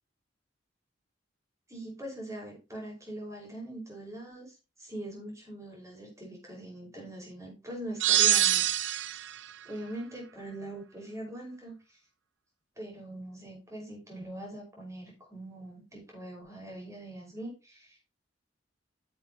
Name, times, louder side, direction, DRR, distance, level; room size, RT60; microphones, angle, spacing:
voice 1, 1.7-8.6 9.7-11.8 12.8-18.0, right 1 dB, 15° right, 0 dB, 5.3 m, -42 dB
sound 1, 8.0-9.4, right 12 dB, 70° right, 0.6 m, -24 dB
9.8 x 7.3 x 4.0 m, 0.28 s
head